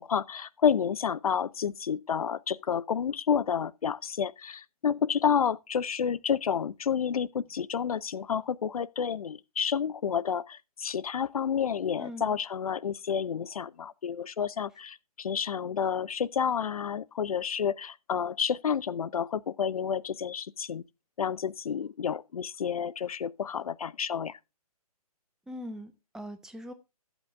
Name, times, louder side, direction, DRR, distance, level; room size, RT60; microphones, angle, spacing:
voice 1, 0.0-20.8 21.2-24.4, left 7 dB, 70° left, 0.6 m, -30 dB
voice 2, 12.0-12.4 25.5-26.7, equal, 5° right, 0.9 m, -41 dB
13.0 x 8.0 x 3.4 m
hypercardioid pair, 140°, 20 cm